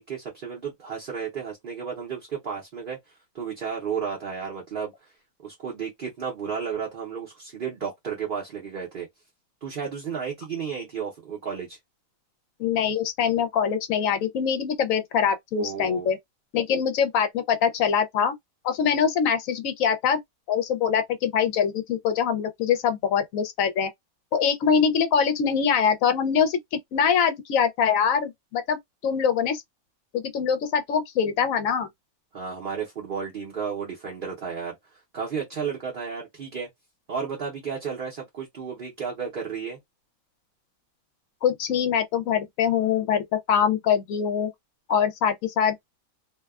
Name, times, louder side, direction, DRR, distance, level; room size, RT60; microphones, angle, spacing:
voice 1, 0.0-5.1 5.4-9.1 9.6-11.8 15.6-16.1 32.3-36.7 37.1-39.8, right 6 dB, 45° right, 0.8 m, -33 dB
voice 2, 12.6-16.2 16.5-18.3 18.6-20.2 20.5-23.9 24.3-28.8 29.0-29.6 30.1-31.9 41.4-44.5 44.9-45.7, left 7 dB, 70° left, 1.0 m, -23 dB
2.7 x 2.2 x 2.3 m
omnidirectional pair, 1.6 m